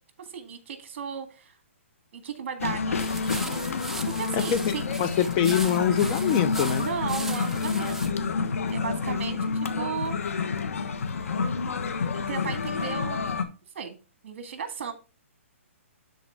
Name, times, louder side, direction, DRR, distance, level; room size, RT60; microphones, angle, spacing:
voice 1, 0.2-1.5 2.1-3.6 4.1-4.8 6.8-8.0 8.7-10.2 12.1-13.3 13.8-14.0 14.2-14.9, right 6 dB, 55° right, 1.8 m, -35 dB
sound 1, 2.6-13.4, left 5 dB, 80° left, 1.2 m, -29 dB
sound 2, 3.0-8.1, right 3 dB, 5° right, 0.3 m, -39 dB
voice 2, 4.3-6.9, left 8 dB, 30° left, 0.7 m, -25 dB
11.5 x 3.9 x 3.6 m
hypercardioid pair, 150°, 7 cm